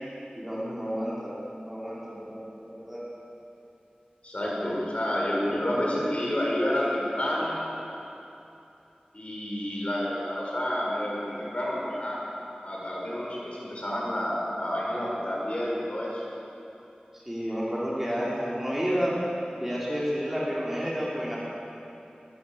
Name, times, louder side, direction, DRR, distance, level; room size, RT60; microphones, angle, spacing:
voice 1, 0.3-1.3 1.7-3.1 17.1-19.1 19.6-21.4, equal, 10° right, -7 dB, 5.5 m, -30 dB
voice 2, 4.2-7.5 9.1-12.2 12.6-16.2, left 1 dB, 45° left, -4 dB, 7.2 m, -29 dB
20.5 x 17.5 x 8.0 m, 2.8 s
wide cardioid pair, 45°, 3 cm